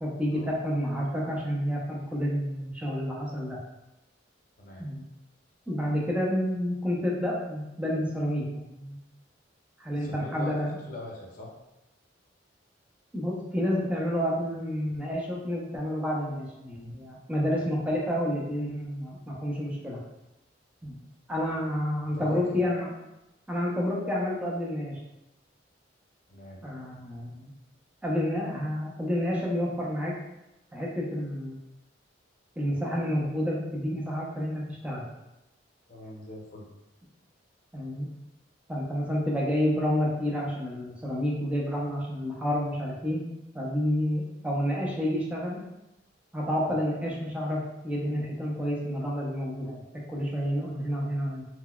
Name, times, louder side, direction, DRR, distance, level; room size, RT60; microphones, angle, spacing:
voice 1, 0.0-3.6 4.8-5.0 5.7-9.0 9.8-10.8 13.1-20.0 20.8-20.9 21.3-22.9 23.5-25.0 26.6-27.5 28.0-30.2 30.7-31.6 32.6-35.0 37.7-38.1 38.7-43.3 43.5-45.6 46.3-51.5, equal, 5° right, -4 dB, 0.5 m, -29 dB
voice 2, 10.0-11.5 22.1-22.6 26.3-26.7 35.9-36.7 46.7-46.8, left 1 dB, 45° left, -2 dB, 0.6 m, -42 dB
3.8 x 2.1 x 2.2 m, 0.95 s
head